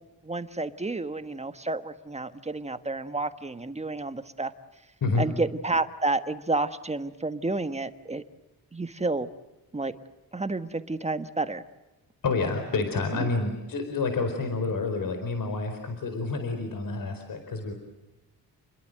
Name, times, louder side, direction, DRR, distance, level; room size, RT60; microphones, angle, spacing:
voice 1, 0.2-4.5 5.2-8.2 8.7-9.3 9.7-9.9 10.3-11.6 13.2-13.3, right 2 dB, 20° right, 10 dB, 1.5 m, -30 dB
voice 2, 12.2-17.7, left 3 dB, 60° left, 6 dB, 4.6 m, -28 dB
30.0 x 22.0 x 7.8 m, 1.0 s
wide cardioid pair, 120°, 37 cm